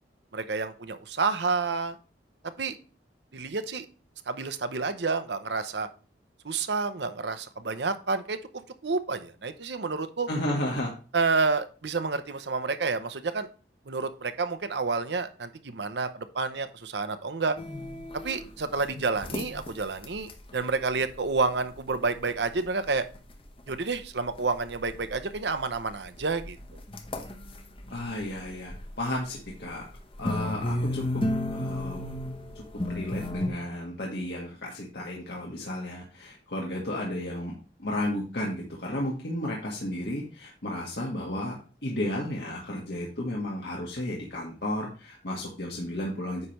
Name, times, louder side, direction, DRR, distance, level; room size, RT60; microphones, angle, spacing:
voice 1, 0.3-2.0 2.6-2.8 3.3-3.9 4.3-5.9 6.4-10.3 11.1-13.5 13.9-17.6 18.1-23.1 23.7-26.6, right 4 dB, 70° right, 11 dB, 0.8 m, -29 dB
voice 2, 10.3-10.9 27.9-29.8 30.2-31.2 31.5-32.0 32.8-37.5 37.8-41.6 41.8-46.5, left 1 dB, 65° left, -2 dB, 1.5 m, -33 dB
sound 1, 17.6-20.5 20.9-21.1 21.5-21.6 21.9-22.0 22.3-23.2 23.6-24.1 24.4-28.9 29.4-33.5, left 1 dB, 30° left, 0.9 m, -33 dB
9.6 x 3.3 x 5.8 m, 0.35 s
head